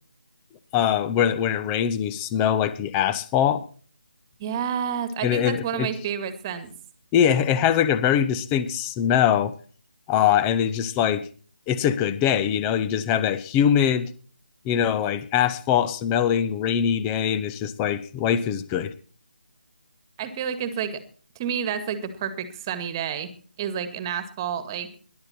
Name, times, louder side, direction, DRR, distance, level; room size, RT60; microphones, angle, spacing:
voice 1, 0.7-3.6 5.2-5.9 7.1-9.5 10.1-11.3 11.7-14.1 14.6-18.9, left 9 dB, 15° left, 14 dB, 0.9 m, -22 dB
voice 2, 4.4-6.7 20.2-21.0 21.4-23.3 23.6-24.9, right 8 dB, 20° right, 11 dB, 1.9 m, -29 dB
20.5 x 12.0 x 4.3 m, 0.41 s
figure-of-eight pair, 155°, 6 cm